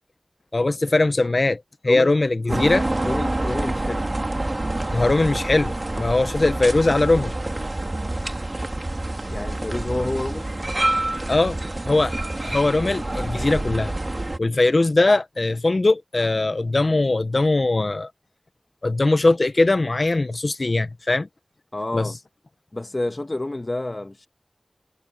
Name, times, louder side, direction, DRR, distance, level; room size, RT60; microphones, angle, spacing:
voice 1, 0.5-2.8 4.9-7.3 11.3-11.6 11.8-12.1 12.4-13.9 14.4-18.1 18.8-21.3 21.9-22.1, left 2 dB, 55° left, 0.7 m, -20 dB
voice 2, 1.9-2.2 2.4-2.6 3.0-4.1 9.3-10.5 21.7-22.2 22.7-24.3, left 2 dB, 40° left, 1.4 m, -29 dB
sound 1, 2.5-14.4, right 2 dB, 35° right, 2.3 m, -27 dB
wide cardioid pair, 65°, 0 cm